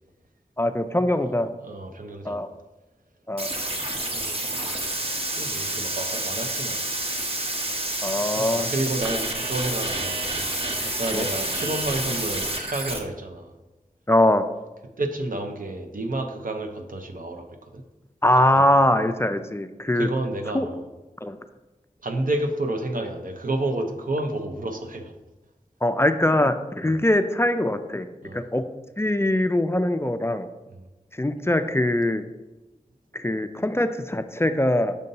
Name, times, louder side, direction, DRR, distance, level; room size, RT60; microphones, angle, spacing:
voice 1, 0.6-1.5 2.2-2.5 3.3-3.5 8.0-8.7 11.1-11.3 14.1-14.4 18.2-20.1 20.5-20.7 21.2-21.4 25.8-28.1 28.3-28.6 29.0-30.5 31.1-32.2 33.1-34.9, left 1 dB, 20° left, 9 dB, 0.3 m, -22 dB
voice 2, 1.6-2.4 4.0-7.0 8.3-10.2 10.6-13.5 15.0-17.5 17.7-17.8 18.5-18.6 19.9-20.8 22.0-25.1 28.2-28.5 30.8-30.9, right 2 dB, 75° right, 4 dB, 0.7 m, -30 dB
sound 1, 3.4-13.0, right 1 dB, 45° right, 0.9 m, -29 dB
6.6 x 2.7 x 5.4 m, 1.1 s
wide cardioid pair, 50°, 14 cm